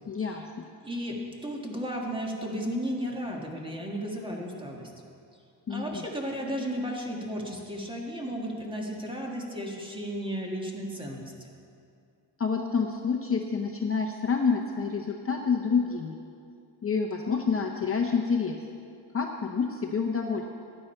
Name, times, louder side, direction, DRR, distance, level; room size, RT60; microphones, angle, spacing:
voice 1, 0.1-0.4 5.7-6.1 12.4-16.2 16.8-18.6 19.1-20.4, left 5 dB, 30° left, 1 dB, 0.7 m, -28 dB
voice 2, 0.8-1.2 1.4-4.9 5.7-11.5, equal, 10° right, -1 dB, 1.6 m, -34 dB
15.5 x 11.0 x 4.4 m, 2.4 s
wide cardioid pair, 155°, 43 cm